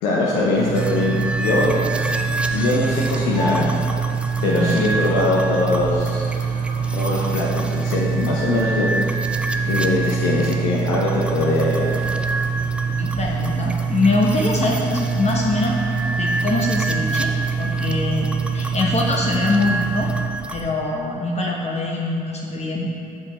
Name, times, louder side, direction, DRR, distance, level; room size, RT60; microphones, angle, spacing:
voice 1, 0.0-1.8 2.5-3.8 4.4-6.2 6.9-9.2 9.6-12.1, left 2 dB, 75° left, -4 dB, 0.7 m, -22 dB
sound 1, 0.5-20.3, right 6 dB, 45° right, 0.9 m, -25 dB
sound 2, 0.8-20.7, right 1 dB, 5° right, 0.4 m, -30 dB
voice 2, 4.4-4.9 13.0-15.8 16.2-20.1 20.5-22.9, left 2 dB, 35° left, -2 dB, 0.9 m, -23 dB
5.4 x 5.1 x 4.1 m, 2.6 s
hypercardioid pair, 45°, 19 cm